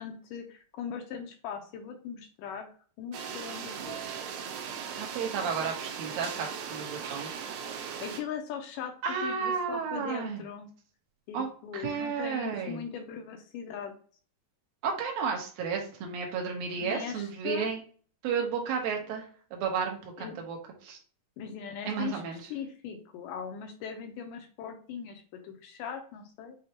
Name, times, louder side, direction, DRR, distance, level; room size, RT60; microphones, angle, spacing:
voice 1, 0.0-2.7 3.0-4.0 7.6-8.9 9.2-10.7 11.3-13.9 16.8-17.7 20.2-20.4 21.4-22.2 22.5-26.6, left 7 dB, 80° left, 4 dB, 2.1 m, -40 dB
sound 1, 3.1-8.2, right 7 dB, 85° right, 2.4 m, -38 dB
voice 2, 5.0-7.3 9.0-10.4 11.3-11.5 11.7-12.8 14.8-17.8 18.2-21.0 21.9-22.4, right 6 dB, 65° right, 1 dB, 1.8 m, -32 dB
6.4 x 2.3 x 2.9 m, 0.43 s
omnidirectional pair, 4.1 m